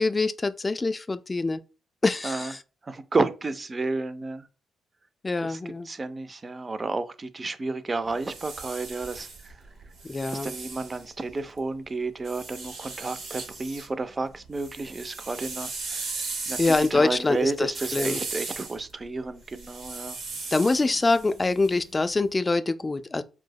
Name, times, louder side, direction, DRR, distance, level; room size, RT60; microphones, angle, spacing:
voice 1, 0.0-1.6 2.0-2.6 5.2-5.9 10.0-10.5 16.6-18.2 20.5-23.2, left 3 dB, 30° left, 0.3 m, -25 dB
voice 2, 2.8-4.5 5.4-5.6 5.9-9.5 10.3-20.2, right 3 dB, 35° right, 0.4 m, -31 dB
sound 1, 8.0-11.6 12.2-13.9 14.2-22.2, right 3 dB, 65° right, 1.0 m, -37 dB
4.6 x 2.0 x 2.3 m
hypercardioid pair, 45°, 0 cm